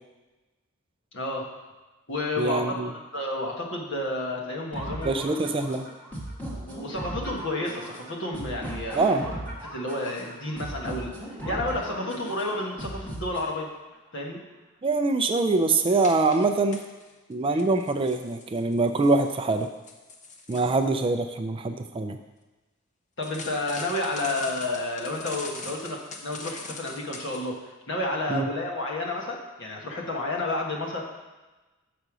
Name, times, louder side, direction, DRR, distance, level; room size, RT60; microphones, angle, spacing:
voice 1, 1.1-1.5 2.1-5.5 6.7-9.4 9.7-13.7 14.1-14.4 17.5-17.6 23.2-27.6 27.9-31.0, left 2 dB, 60° left, -1 dB, 1.4 m, -31 dB
voice 2, 2.4-2.9 5.0-5.9 8.9-9.2 14.8-16.8 17.3-19.7 20.5-22.2 28.3-28.5, right 3 dB, 25° right, 7 dB, 0.4 m, -24 dB
sound 1, 4.7-13.7, right 1 dB, 10° left, 1.3 m, -37 dB
sound 2, 16.0-17.1 17.5-20.8 23.2-27.5, left 3 dB, 35° left, 0.7 m, -42 dB
6.7 x 5.1 x 6.1 m, 1.2 s
head